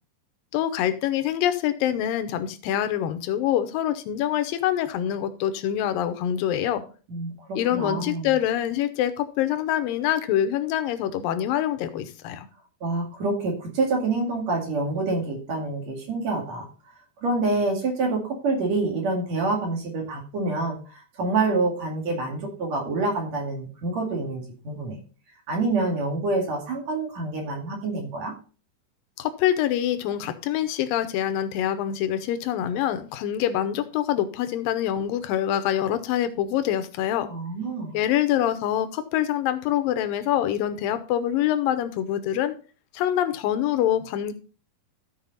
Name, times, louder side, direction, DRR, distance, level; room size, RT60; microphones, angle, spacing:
voice 1, 0.5-6.8 7.6-12.5 29.2-37.3 37.9-42.5 42.9-44.3, left 11 dB, 75° left, 10 dB, 2.4 m, -25 dB
voice 2, 7.1-8.3 12.8-16.7 17.2-25.0 25.5-28.3 37.3-38.0, right 3 dB, 50° right, 1 dB, 3.1 m, -27 dB
13.5 x 4.9 x 4.0 m, 0.38 s
omnidirectional pair, 4.2 m